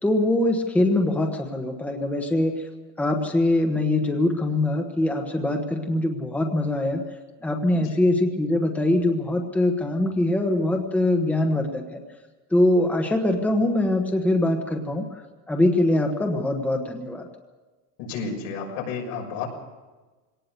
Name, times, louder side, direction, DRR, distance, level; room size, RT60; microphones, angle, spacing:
voice 1, 0.0-2.6 3.0-7.0 7.4-12.0 12.5-15.0 15.5-17.3, left 1 dB, 5° left, 3 dB, 1.2 m, -23 dB
voice 2, 18.0-19.5, left 5 dB, 85° left, 1 dB, 6.6 m, -31 dB
22.0 x 18.5 x 6.9 m, 1.3 s
cardioid pair, 180°, 35 cm